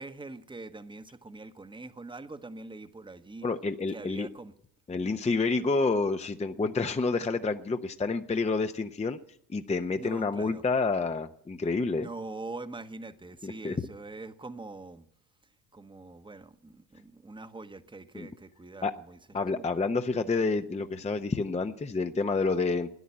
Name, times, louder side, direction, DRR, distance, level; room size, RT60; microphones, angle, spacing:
voice 1, 0.0-3.5 3.9-4.5 10.0-10.6 12.0-15.1 15.7-19.2 19.5-19.6, right 3 dB, 10° right, 1.1 m, -43 dB
voice 2, 3.4-4.3 4.9-9.2 9.5-12.1 13.4-13.8 18.1-18.3 18.8-18.9 19.3-22.9, left 3 dB, 15° left, 0.8 m, -29 dB
13.0 x 10.0 x 9.8 m
hypercardioid pair, 65°, 47 cm